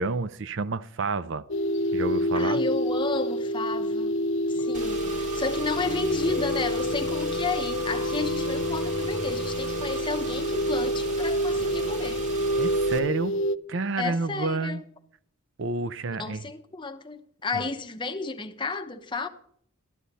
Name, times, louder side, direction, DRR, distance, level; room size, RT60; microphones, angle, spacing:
voice 1, 0.0-1.5 1.9-2.6 12.6-13.4 13.7-14.8 15.6-16.5, right 3 dB, 60° right, 0.5 m, -29 dB
sound 1, 1.5-13.6, equal, 60° left, 0.5 m, -27 dB
voice 2, 2.3-4.2 4.5-12.2 14.0-14.8 16.1-19.3, left 3 dB, 20° left, 0.8 m, -32 dB
Car / Engine, 4.7-13.0, right 2 dB, 35° right, 1.8 m, -37 dB
12.0 x 11.5 x 4.1 m
head